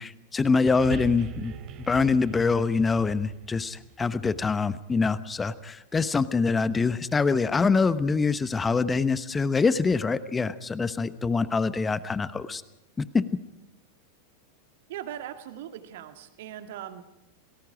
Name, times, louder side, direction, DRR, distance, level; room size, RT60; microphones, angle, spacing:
voice 1, 0.0-1.5 1.8-12.6 13.0-13.2, left 4 dB, 15° left, 16 dB, 1.0 m, -25 dB
sound 1, 0.7-5.2 6.0-6.1, right 7 dB, 35° right, 3.1 m, -41 dB
voice 2, 14.9-17.0, right 11 dB, 55° right, 8 dB, 2.1 m, -39 dB
28.5 x 19.5 x 5.0 m, 0.93 s
figure-of-eight pair, 90°, 0 cm